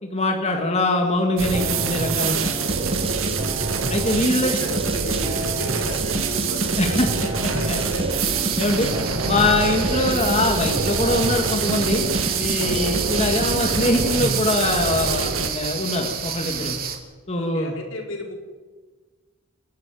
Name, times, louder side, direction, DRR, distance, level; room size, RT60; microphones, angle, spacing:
voice 1, 0.0-2.5 3.9-4.6 6.8-7.1 7.7-7.8 8.6-8.9 9.2-12.1 12.4-16.8 17.3-17.7, left 2 dB, 30° left, 2 dB, 2.3 m, -23 dB
sound 1, 1.4-15.5, right 4 dB, 80° right, 2.3 m, -25 dB
sound 2, 1.5-14.5, right 2 dB, 25° right, 1.0 m, -30 dB
voice 2, 3.2-3.6 4.2-8.2 9.6-10.0 12.5-12.9 17.3-18.3, left 2 dB, 75° left, 1 dB, 5.0 m, -36 dB
sound 3, 8.2-17.0, right 7 dB, 45° right, 2.7 m, -31 dB
29.0 x 12.0 x 9.4 m, 1.4 s
head